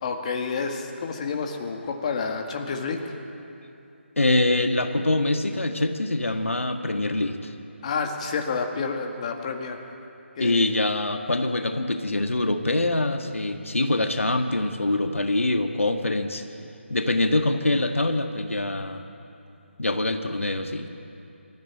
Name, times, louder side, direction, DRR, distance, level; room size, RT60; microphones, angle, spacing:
voice 1, 0.0-3.0 7.8-9.8 10.4-10.7, left 5 dB, 30° left, 3 dB, 1.9 m, -29 dB
voice 2, 4.2-7.5 10.4-16.4 16.9-19.0 19.8-20.9, left 2 dB, 90° left, 6 dB, 1.6 m, -24 dB
25.0 x 14.0 x 8.9 m, 2.7 s
figure-of-eight pair, 155°, 7 cm